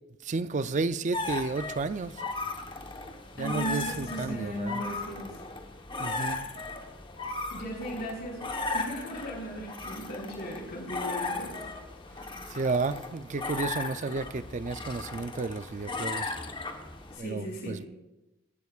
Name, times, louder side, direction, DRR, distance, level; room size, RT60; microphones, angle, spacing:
voice 1, 0.2-2.2 3.4-4.8 6.0-6.5 12.5-16.3 17.2-17.8, right 3 dB, 35° right, 0.4 m, -32 dB
sound 1, 1.1-17.2, left 3 dB, 25° left, 1.0 m, -36 dB
voice 2, 3.4-5.4 6.0-6.6 7.5-8.4 8.7-11.6 12.1-12.4 17.1-17.8, right 1 dB, 60° left, 4.8 m, -37 dB
24.0 x 11.5 x 2.4 m
head